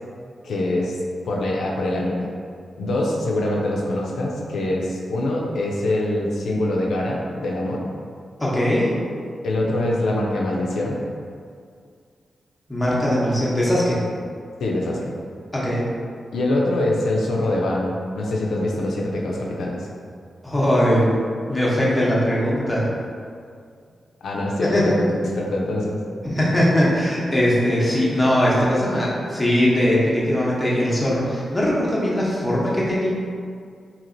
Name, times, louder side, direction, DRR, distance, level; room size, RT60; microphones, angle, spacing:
voice 1, 0.4-1.0 1.2-2.3 2.8-7.8 9.4-11.0 14.6-15.1 16.3-19.9 24.2-26.0, left 1 dB, 85° left, -2 dB, 0.4 m, -24 dB
voice 2, 8.4-8.9 12.7-14.0 15.5-15.8 20.4-21.2 21.5-22.8 24.6-25.0 26.2-33.1, equal, 10° left, -6 dB, 0.8 m, -20 dB
3.0 x 2.8 x 2.6 m, 2.2 s
cardioid pair, 85°, 0 cm